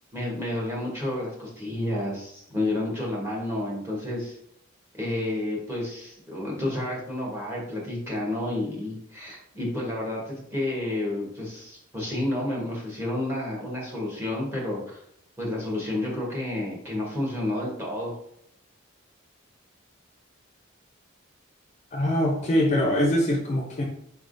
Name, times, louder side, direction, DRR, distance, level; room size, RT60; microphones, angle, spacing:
voice 1, 0.1-4.4 4.9-15.0 15.4-18.2, left 1 dB, 10° right, -4 dB, 1.2 m, -30 dB
voice 2, 21.9-23.8, left 1 dB, 35° left, 0 dB, 0.6 m, -23 dB
4.4 x 3.5 x 2.6 m, 0.71 s
head